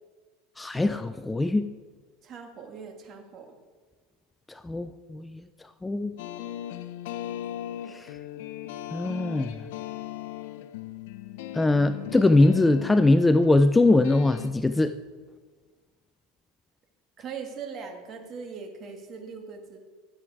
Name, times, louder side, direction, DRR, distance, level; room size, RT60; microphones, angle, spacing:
voice 1, 0.6-1.6 4.6-5.4 5.8-6.1 7.9-8.1 8.9-9.5 11.5-14.9, left 2 dB, 10° left, 11 dB, 0.3 m, -21 dB
voice 2, 2.2-3.6 17.2-19.8, right 5 dB, 40° right, 4 dB, 1.7 m, -40 dB
sound 1, 6.2-14.5, left 13 dB, 75° left, 0.6 m, -38 dB
11.5 x 7.5 x 4.8 m, 1.5 s
supercardioid pair, 125°, 0 cm